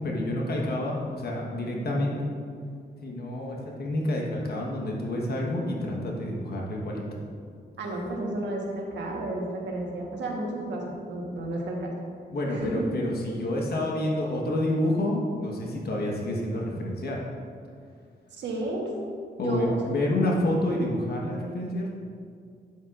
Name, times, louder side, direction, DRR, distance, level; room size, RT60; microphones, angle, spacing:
voice 1, 0.0-2.3 3.0-7.2 12.3-17.2 19.4-21.9, left 1 dB, 60° left, -1 dB, 1.3 m, -28 dB
voice 2, 7.8-11.9 12.5-12.9 18.3-18.9 19.4-19.8, right 1 dB, 85° right, -1 dB, 1.3 m, -32 dB
9.0 x 7.9 x 2.5 m, 2.2 s
cardioid pair, 110°, 18 cm